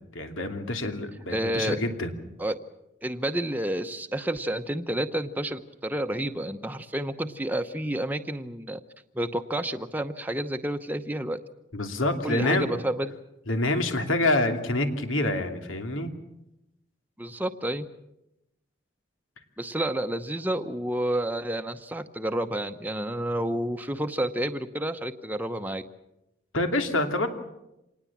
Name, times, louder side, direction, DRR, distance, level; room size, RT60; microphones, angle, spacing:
voice 1, 0.1-2.1 11.7-12.8 13.4-16.1 26.5-27.3, left 2 dB, 90° left, 6 dB, 2.9 m, -26 dB
voice 2, 1.3-1.8 2.4-2.6 3.0-8.8 9.1-11.4 12.2-13.1 17.2-17.9 19.6-25.8, right 1 dB, 10° right, 6 dB, 0.8 m, -30 dB
26.0 x 19.5 x 7.3 m, 0.88 s
head